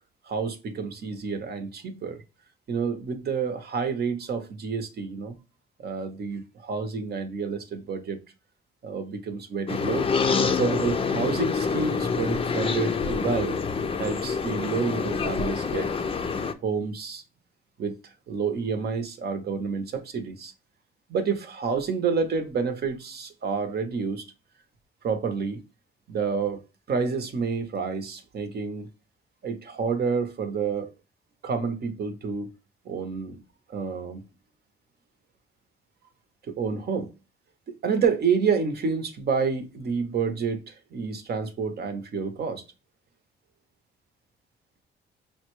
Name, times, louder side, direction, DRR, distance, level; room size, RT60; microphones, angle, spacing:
voice 1, 0.2-2.2 2.7-5.4 5.8-8.2 8.8-10.1 10.4-13.6 14.0-15.9 16.6-17.2 17.8-20.5 21.1-24.3 25.0-25.6 26.1-26.6 26.9-28.9 29.4-30.9 31.4-32.5 32.8-33.4 33.7-34.2 36.5-37.1 37.8-42.6, right 5 dB, 55° right, 0.9 m, -29 dB
sound 1, 9.7-16.5, left 5 dB, 30° left, 0.5 m, -26 dB
5.5 x 2.2 x 3.0 m
cardioid pair, 90°, 20 cm